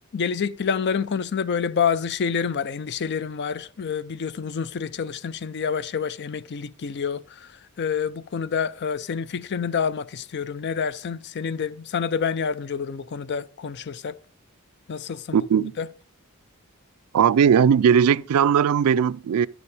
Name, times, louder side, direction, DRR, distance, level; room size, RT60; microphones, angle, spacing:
voice 1, 0.1-7.5 7.8-14.2 14.9-15.4 15.8-15.9, left 6 dB, 50° left, 0.4 m, -28 dB
voice 2, 15.3-15.7 17.1-19.5, right 7 dB, 80° right, 0.3 m, -18 dB
9.8 x 7.0 x 4.9 m
head